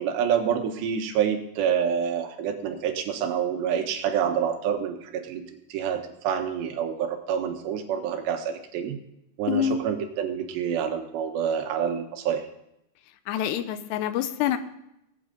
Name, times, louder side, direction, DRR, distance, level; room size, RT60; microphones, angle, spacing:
voice 1, 0.0-9.0 9.4-12.5, right 8 dB, 85° right, 5 dB, 3.4 m, -27 dB
voice 2, 9.5-9.8 13.3-14.6, left 9 dB, 90° left, 11 dB, 2.8 m, -26 dB
18.5 x 8.8 x 3.9 m, 0.81 s
omnidirectional pair, 4.9 m